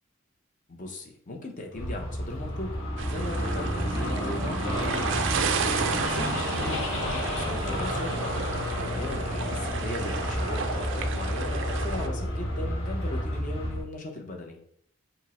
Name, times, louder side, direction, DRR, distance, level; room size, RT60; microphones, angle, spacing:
voice 1, 0.7-14.6, left 2 dB, 40° left, 2 dB, 0.7 m, -38 dB
sound 1, 1.7-13.8, equal, 60° left, 1.3 m, -30 dB
sound 2, 3.0-12.1, right 6 dB, 60° right, 0.3 m, -33 dB
5.1 x 2.1 x 4.2 m, 0.66 s
head